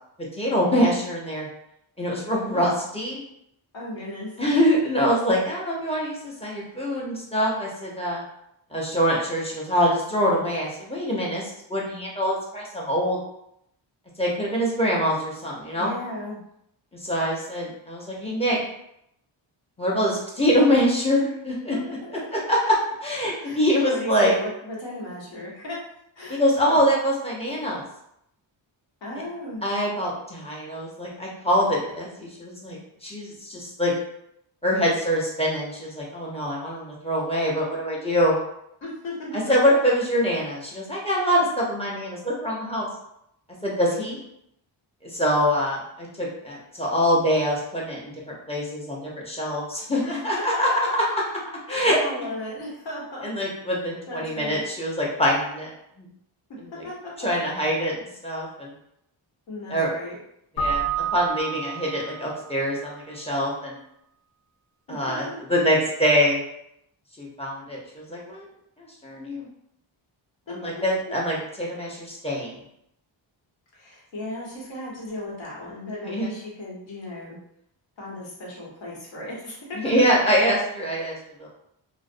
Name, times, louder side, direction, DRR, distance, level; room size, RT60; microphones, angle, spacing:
voice 1, 0.3-1.5 2.0-3.2 4.4-8.2 8.7-13.2 14.2-15.9 16.9-18.6 19.8-21.8 22.3-22.7 23.0-24.3 26.3-27.8 29.6-33.9 34.6-38.3 39.3-42.9 43.6-44.2 45.0-50.7 51.7-52.0 53.2-56.1 56.6-56.8 57.2-58.7 59.7-59.9 60.6-63.8 64.9-66.4 67.2-68.5 68.8-69.5 70.5-72.6 76.0-76.3 79.7-81.5, equal, 15° left, -4 dB, 0.6 m, -24 dB
voice 2, 3.7-4.3 15.8-16.4 23.4-23.6 23.9-25.8 26.2-26.8 29.0-29.6 38.8-39.6 50.0-50.2 51.7-53.3 54.1-54.6 56.8-56.9 59.5-60.2 64.9-65.4 73.7-77.4 78.0-79.7, left 1 dB, 70° left, -5 dB, 1.1 m, -36 dB
Keyboard (musical), 60.6-62.4, right 6 dB, 50° left, 0.6 m, -28 dB
2.4 x 2.0 x 2.5 m, 0.76 s
cardioid pair, 100°, 47 cm